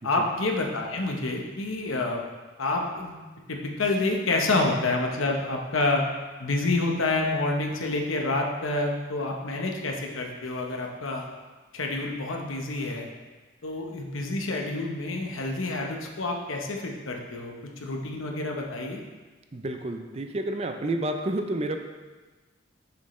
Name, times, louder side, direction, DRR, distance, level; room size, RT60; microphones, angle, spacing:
voice 1, 0.0-2.2 2.6-3.2 3.5-6.0 6.4-11.2 11.7-13.1 13.6-19.0, left 2 dB, 90° left, 1 dB, 1.0 m, -28 dB
voice 2, 19.5-21.8, right 1 dB, 30° right, 5 dB, 0.5 m, -30 dB
7.0 x 6.5 x 3.2 m, 1.3 s
head